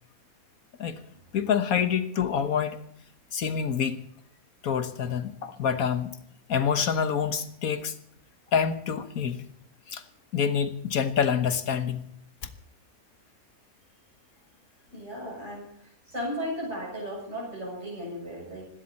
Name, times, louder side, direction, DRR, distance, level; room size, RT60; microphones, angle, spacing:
voice 1, 1.3-2.8 3.3-4.0 4.6-6.2 6.5-8.0 8.5-9.4 9.9-10.0 10.3-12.1, left 7 dB, 75° left, 9 dB, 1.7 m, -27 dB
voice 2, 14.9-18.7, equal, 50° right, -4 dB, 7.5 m, -36 dB
25.0 x 12.5 x 4.3 m, 0.65 s
omnidirectional pair, 1.5 m